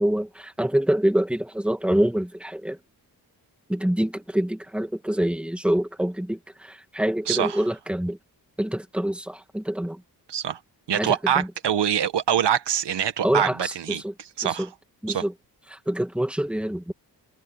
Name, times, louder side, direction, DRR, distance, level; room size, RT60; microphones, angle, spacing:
voice 1, 0.0-2.8 3.7-8.2 8.6-10.0 10.9-11.5 13.2-14.1 14.4-14.7 15.0-15.3 15.7-16.9, right 1 dB, 5° right, 1.8 m, -26 dB
voice 2, 7.3-7.6 10.3-10.6 10.9-14.7 15.1-15.2, right 9 dB, 85° right, 1.8 m, -25 dB
wide cardioid pair, 105°, 40 cm